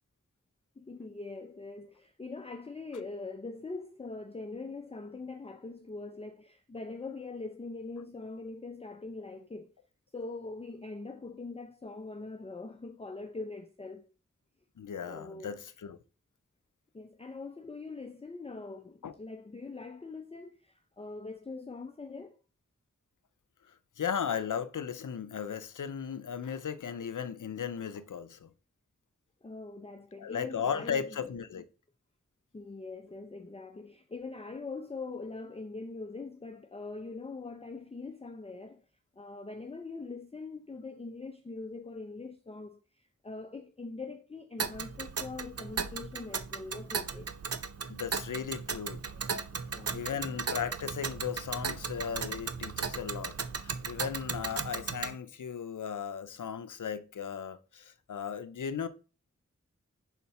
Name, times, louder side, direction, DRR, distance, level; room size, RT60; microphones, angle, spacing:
voice 1, 0.8-9.7 10.1-14.1 15.1-15.6 16.9-22.4 29.4-31.3 32.5-38.8 39.2-47.3 49.8-50.3, left 3 dB, 20° left, 0.5 m, -42 dB
voice 2, 14.8-16.0 19.0-19.1 24.0-28.5 30.2-31.6 47.9-49.0 49.9-53.4 53.6-58.9, left 7 dB, 85° left, 0.6 m, -36 dB
Tick, 44.6-55.1, right 5 dB, 55° right, 0.6 m, -36 dB
4.2 x 4.1 x 5.6 m
wide cardioid pair, 40°, 30 cm